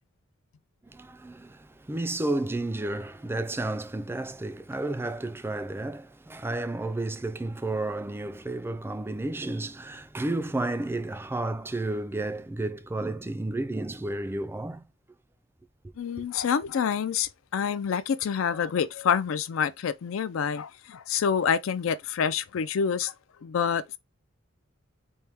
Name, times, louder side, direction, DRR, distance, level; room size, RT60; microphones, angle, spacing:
voice 1, 0.9-14.9, right 2 dB, 10° right, 0.3 m, -32 dB
voice 2, 16.0-23.1 23.4-24.0, left 7 dB, 75° left, 0.4 m, -27 dB
4.4 x 2.1 x 3.4 m
head